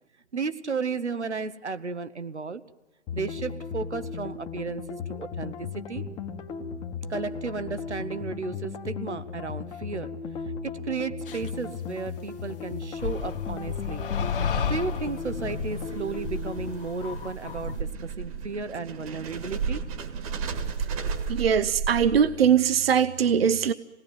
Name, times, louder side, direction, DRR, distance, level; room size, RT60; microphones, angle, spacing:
voice 1, 0.3-2.6 3.1-6.1 7.1-10.1 10.6-14.1 14.4-19.8, right 4 dB, 80° right, 12 dB, 1.1 m, -34 dB
sound 1, 3.1-16.8, left 5 dB, 15° left, 1.1 m, -36 dB
sound 2, 11.3-11.5 13.0-17.8, left 7 dB, 50° left, 1.3 m, -32 dB
sound 3, 14.4-22.5, right 5 dB, 30° right, 1.7 m, -34 dB
voice 2, 21.3-23.7, right 8 dB, 60° right, 15 dB, 0.8 m, -21 dB
26.5 x 18.5 x 9.4 m, 1.2 s
figure-of-eight pair, 130°, 34 cm